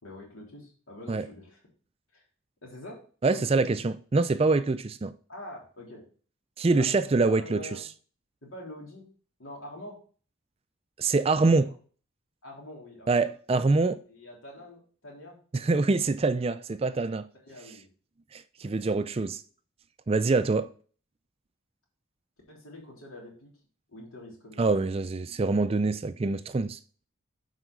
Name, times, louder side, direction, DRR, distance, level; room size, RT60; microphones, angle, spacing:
voice 1, 0.0-1.6 2.1-2.3 2.6-3.0 3.2-3.6 5.3-6.0 6.7-7.9 8.4-9.0 9.4-10.0 11.5-11.7 12.4-13.2 14.1-15.4 17.4-17.9 18.6-18.7 22.5-23.5 23.9-24.7, left 1 dB, 80° left, 3.4 m, -45 dB
voice 2, 3.2-5.1 6.6-7.6 11.0-11.7 13.1-14.0 15.5-17.3 18.3-19.4 20.1-20.7 24.6-26.8, right 3 dB, 30° right, 0.3 m, -25 dB
8.0 x 5.0 x 4.7 m
head